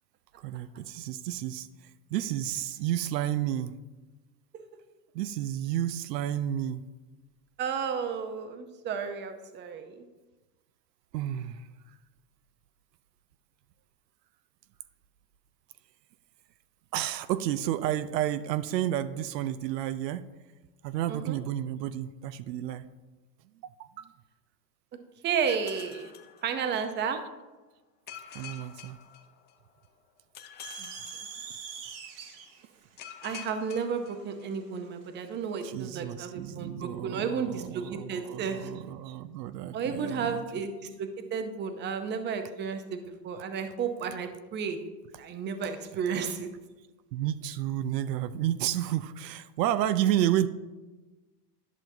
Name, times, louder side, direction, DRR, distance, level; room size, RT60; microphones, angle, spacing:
voice 1, 0.4-1.7 2.1-3.8 5.1-6.9 11.1-11.7 16.9-20.3 20.8-22.9 23.8-24.1 25.9-26.0 27.1-27.2 28.3-29.0 35.6-40.6 47.1-50.5, right 12 dB, 80° right, 13 dB, 0.6 m, -31 dB
voice 2, 7.6-10.0 21.1-21.4 25.2-26.1 26.4-27.2 30.8-30.9 33.2-38.7 39.7-44.8 45.2-46.5, right 6 dB, 20° right, 8 dB, 0.6 m, -32 dB
sound 1, 25.5-27.1 28.1-29.8 30.3-32.0 33.0-34.7, left 9 dB, 20° left, 0.5 m, -47 dB
sound 2, 30.6-35.1, right 6 dB, 45° right, 1.0 m, -44 dB
11.0 x 5.7 x 2.7 m, 1.2 s
supercardioid pair, 120°, 49 cm